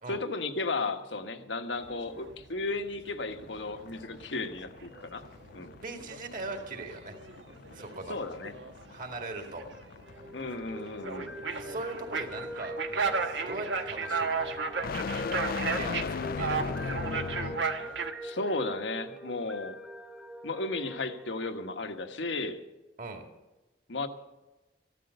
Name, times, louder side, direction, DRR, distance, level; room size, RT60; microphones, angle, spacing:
voice 1, 0.1-5.2 5.5-5.8 8.1-8.5 10.3-11.4 18.2-19.8 20.4-22.6 23.9-24.1, left 3 dB, 80° left, 7 dB, 1.3 m, -34 dB
sound 1, 1.8-2.6 2.9-3.4 3.7-18.1, right 4 dB, 75° right, 1.4 m, -35 dB
sound 2, 3.3-17.8, left 5 dB, 55° left, 0.4 m, -39 dB
voice 2, 5.8-7.1 7.7-8.2 8.9-9.6 11.6-13.2 13.5-14.6 15.7-17.2 23.0-23.2, right 2 dB, 45° right, 4 dB, 2.3 m, -40 dB
sound 3, 10.0-22.1, equal, 5° right, 1.1 m, -44 dB
15.0 x 12.5 x 6.8 m, 1.1 s
head